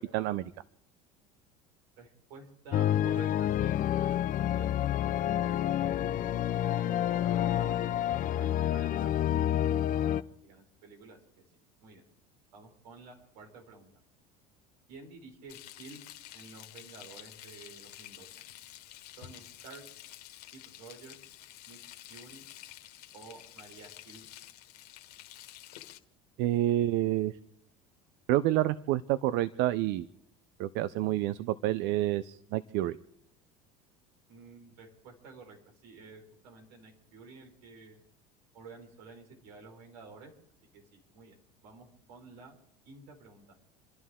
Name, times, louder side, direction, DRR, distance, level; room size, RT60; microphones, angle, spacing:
voice 1, 0.1-0.4 26.4-27.3 28.3-30.1 30.6-33.0, right 14 dB, 65° right, 15 dB, 0.7 m, -28 dB
voice 2, 2.0-6.0 6.8-11.2 11.8-12.0 12.5-13.9 14.9-16.0 16.3-18.4 19.2-19.8 20.5-21.2 21.7-21.8 22.1-22.4 23.1-24.3 34.3-38.0 38.5-40.3 40.7-42.5 42.8-43.4, right 4 dB, 85° right, 1 dB, 4.8 m, -51 dB
sound 1, 2.7-10.2, left 11 dB, 45° left, 0.6 m, -28 dB
Frying (food), 15.5-26.0, left 14 dB, 85° left, 1.5 m, -50 dB
28.5 x 11.5 x 3.7 m, 0.72 s
hypercardioid pair, 90°, 20 cm